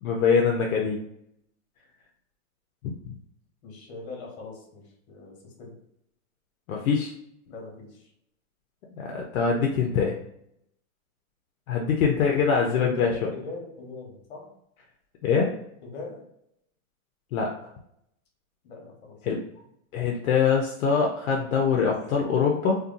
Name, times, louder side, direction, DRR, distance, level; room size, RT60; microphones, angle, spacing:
voice 1, 0.0-1.0 3.0-3.1 6.7-7.1 9.0-10.2 11.7-13.1 15.2-15.5 17.3-17.5 19.3-19.4 19.9-22.8, left 6 dB, 70° left, 0 dB, 0.6 m, -23 dB
voice 2, 3.6-5.7 7.5-8.1 12.6-14.5 15.8-16.3 18.6-19.2, left 3 dB, 45° left, 0 dB, 1.1 m, -40 dB
2.6 x 2.2 x 2.5 m, 0.75 s
hypercardioid pair, 150°, 43 cm